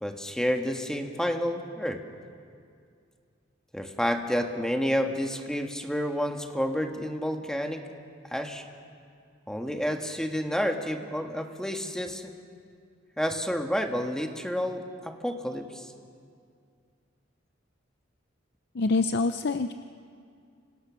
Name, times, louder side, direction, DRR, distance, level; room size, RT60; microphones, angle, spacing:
voice 1, 0.0-2.0 3.7-7.9 8.2-8.7 9.5-12.3 13.2-15.9, equal, 5° left, 4 dB, 1.6 m, -30 dB
voice 2, 18.7-19.7, left 3 dB, 60° left, 9 dB, 0.6 m, -25 dB
29.0 x 26.5 x 6.3 m, 2.3 s
head